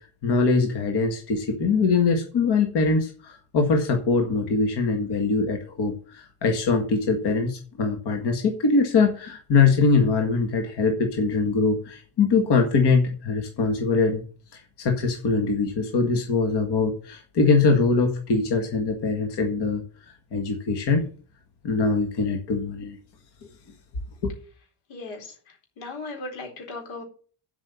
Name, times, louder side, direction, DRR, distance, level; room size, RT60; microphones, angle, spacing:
voice 1, 0.2-14.2 14.5-19.8 20.3-21.1 21.6-23.0 24.2-24.3, left 4 dB, 55° left, 3 dB, 2.0 m, -22 dB
voice 2, 24.9-25.3 25.8-27.0, left 3 dB, 85° left, 2 dB, 4.4 m, -36 dB
7.6 x 6.1 x 7.2 m, 0.40 s
cardioid pair, 120°, 47 cm